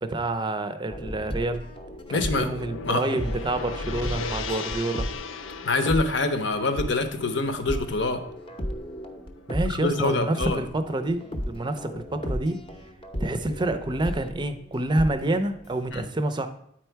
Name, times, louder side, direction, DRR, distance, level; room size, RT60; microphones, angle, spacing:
voice 1, 0.0-1.6 2.1-5.1 9.5-12.6 13.2-16.5, right 2 dB, 25° right, 9 dB, 0.5 m, -28 dB
sound 1, 0.9-15.9, equal, 25° left, 0.8 m, -35 dB
Gong, 1.7-10.0, left 5 dB, 85° left, 0.5 m, -39 dB
voice 2, 2.1-2.5 2.8-3.0 5.6-8.2 9.7-10.6 15.9-16.1, left 3 dB, 60° left, 8 dB, 0.8 m, -25 dB
8.9 x 4.5 x 4.5 m, 0.75 s
head